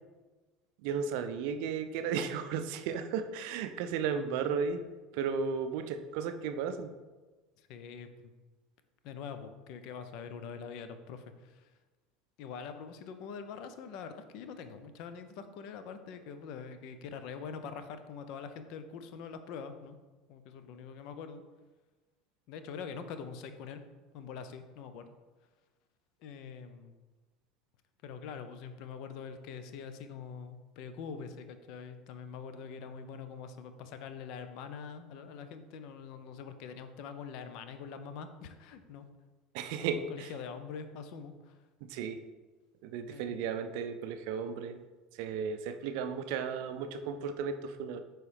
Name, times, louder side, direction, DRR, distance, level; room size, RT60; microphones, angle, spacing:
voice 1, 0.8-4.8 5.1-6.9 39.5-40.3 41.9-42.2 42.8-44.8 45.1-48.0, right 6 dB, 60° right, 8 dB, 0.4 m, -34 dB
voice 2, 7.6-8.3 9.0-11.7 12.4-20.0 20.3-21.4 22.5-23.8 24.1-25.1 26.2-26.9 28.0-39.1 39.8-41.6 43.1-43.5, left 6 dB, 55° left, 9 dB, 0.5 m, -44 dB
9.1 x 3.1 x 3.3 m, 1.2 s
figure-of-eight pair, 70°, 0 cm